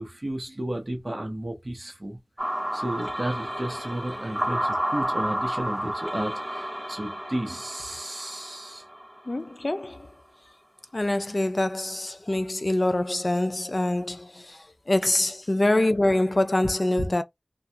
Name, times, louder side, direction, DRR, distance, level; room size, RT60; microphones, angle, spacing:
voice 1, 0.0-2.2 2.7-8.8 15.0-15.1 17.0-17.1, right 1 dB, 45° right, 0.8 m, -33 dB
sound 1, 2.4-9.5, right 1 dB, 20° right, 0.6 m, -31 dB
voice 2, 9.3-10.1 10.9-17.2, left 1 dB, 55° left, 0.3 m, -25 dB
2.3 x 2.2 x 2.8 m
wide cardioid pair, 40°, 0 cm